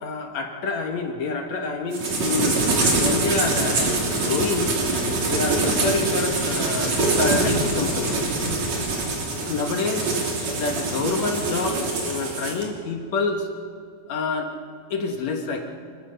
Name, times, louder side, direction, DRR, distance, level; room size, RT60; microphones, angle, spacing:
voice 1, 0.0-2.6 3.0-4.7 5.3-8.2 9.5-10.1 10.5-13.5 14.1-14.5 14.9-15.6, left 3 dB, 60° left, 4 dB, 2.2 m, -27 dB
sound 1, 1.9-12.6, right 3 dB, 50° right, 4.2 m, -24 dB
27.5 x 17.0 x 6.7 m, 2.3 s
omnidirectional pair, 4.2 m